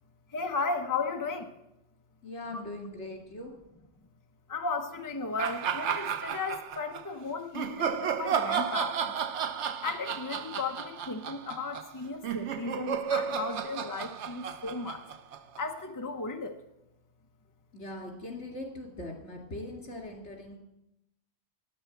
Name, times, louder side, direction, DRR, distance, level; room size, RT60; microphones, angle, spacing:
voice 1, 0.3-1.5 4.5-9.1 9.8-15.0 15.6-16.6, left 4 dB, 20° left, 6 dB, 0.8 m, -35 dB
voice 2, 2.2-3.5 17.7-20.6, left 2 dB, 85° left, 2 dB, 2.9 m, -41 dB
sound 1, 5.4-7.0 7.5-15.8, right 7 dB, 85° right, 1.0 m, -33 dB
9.9 x 9.0 x 7.9 m, 0.87 s
omnidirectional pair, 1.1 m